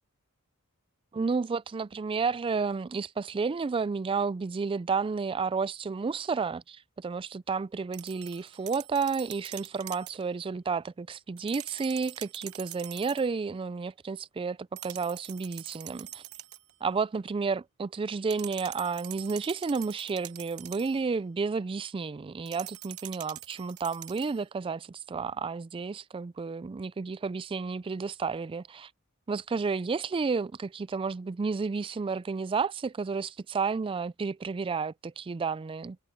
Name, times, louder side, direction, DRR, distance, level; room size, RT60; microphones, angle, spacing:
voice 1, 1.1-16.2 16.8-28.9 29.3-36.0, right 5 dB, 25° right, 0.3 m, -31 dB
sound 1, 7.9-10.2 11.4-13.3 14.8-16.7 18.3-21.0 22.5-24.4, right 15 dB, 70° right, 0.9 m, -44 dB
head